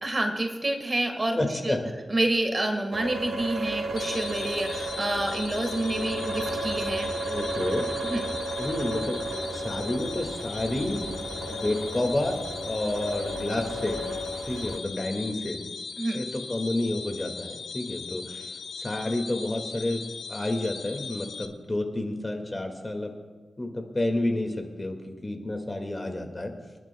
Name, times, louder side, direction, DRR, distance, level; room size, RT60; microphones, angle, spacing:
voice 1, 0.0-1.4 1.6-1.8 2.1-7.1 8.0-8.2 16.0-16.2, right 2 dB, 30° right, 4 dB, 1.6 m, -28 dB
voice 2, 1.4-1.8 7.3-7.9 8.6-9.2 9.5-11.1 11.4-14.0 14.4-15.6 16.1-18.5 18.8-20.0 20.3-23.1 23.6-26.5, left 1 dB, 25° left, 3 dB, 1.9 m, -30 dB
sound 1, 2.9-14.8, right 1 dB, 80° right, 0.9 m, -33 dB
sound 2, 4.0-21.5, left 5 dB, 80° left, 0.8 m, -39 dB
26.5 x 11.0 x 2.3 m, 1.4 s
wide cardioid pair, 95°, 0 cm